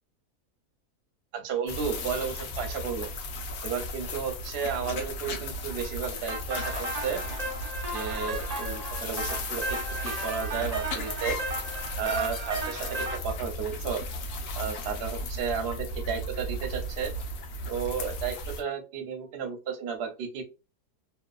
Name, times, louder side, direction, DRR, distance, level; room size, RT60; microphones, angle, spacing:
voice 1, 1.3-3.1 3.6-7.2 7.9-11.4 12.0-14.0 14.5-17.1 17.7-20.4, right 6 dB, 55° right, 4 dB, 0.7 m, -33 dB
sound 1, 1.7-18.6, left 1 dB, 65° left, 0.9 m, -35 dB
sound 2, 6.3-13.2, right 2 dB, 80° right, 0.3 m, -35 dB
2.8 x 2.1 x 2.3 m, 0.29 s
omnidirectional pair, 1.7 m